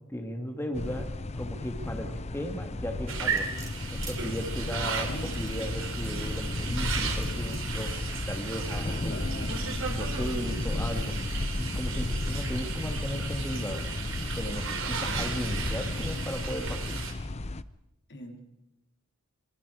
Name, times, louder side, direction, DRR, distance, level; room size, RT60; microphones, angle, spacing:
voice 1, 0.1-1.1 1.4-3.5 3.9-8.0 8.3-11.1 11.5-13.8 14.4-17.0, equal, 10° left, 3 dB, 2.0 m, -36 dB
sound 1, 0.7-17.6, left 2 dB, 30° left, 0.7 m, -33 dB
sound 2, 3.1-17.1, right 6 dB, 65° right, 3.5 m, -36 dB
sound 3, 3.3-4.2 5.1-6.3 6.9-7.7 8.3-8.4, right 4 dB, 20° right, 5.8 m, -47 dB
voice 2, 5.0-5.4 9.1-9.5 18.1-18.4, left 1 dB, 55° left, 4 dB, 3.3 m, -40 dB
25.0 x 24.5 x 4.9 m, 0.92 s
head